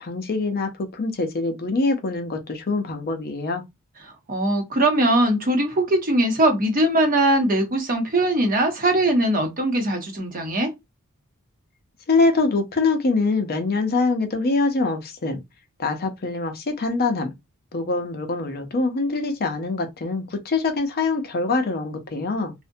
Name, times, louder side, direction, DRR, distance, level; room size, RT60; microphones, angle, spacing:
voice 1, 0.0-3.6 12.1-15.4 15.8-17.3 17.7-22.5, left 3 dB, 45° left, 0.5 m, -24 dB
voice 2, 4.0-10.7, right 1 dB, 40° right, 0.8 m, -21 dB
2.5 x 2.1 x 2.6 m
head